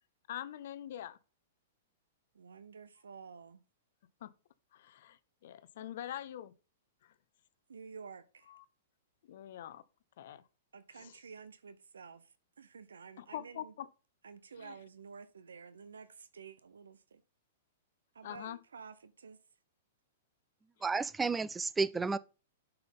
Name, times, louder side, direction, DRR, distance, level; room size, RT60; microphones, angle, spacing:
voice 1, 0.3-1.2 4.2-4.3 4.7-6.5 7.0-7.1 8.5-8.6 9.3-9.8 10.2-10.4 11.0-11.1 13.2-13.9 14.6-14.7 18.2-18.6, left 11 dB, 65° left, 0.6 m, -44 dB
voice 2, 2.3-3.6 7.7-8.5 10.7-12.3 12.6-13.7 14.2-17.2 18.1-19.4, right 5 dB, 90° right, 0.6 m, -51 dB
voice 3, 20.8-22.2, right 4 dB, 10° right, 0.4 m, -32 dB
7.7 x 5.6 x 3.6 m
hypercardioid pair, 125°, 0 cm